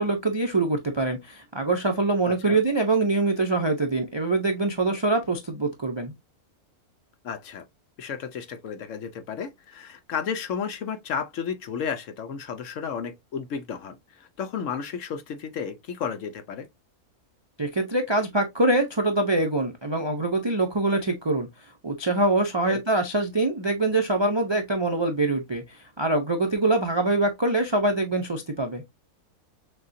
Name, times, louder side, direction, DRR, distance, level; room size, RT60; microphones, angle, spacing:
voice 1, 0.0-6.1 17.6-21.5 21.8-28.8, right 2 dB, 40° right, 0.3 m, -24 dB
voice 2, 2.2-2.6 7.2-7.6 8.0-16.7 22.7-22.8, left 7 dB, 65° left, 0.9 m, -33 dB
6.4 x 2.3 x 2.6 m
omnidirectional pair, 1.6 m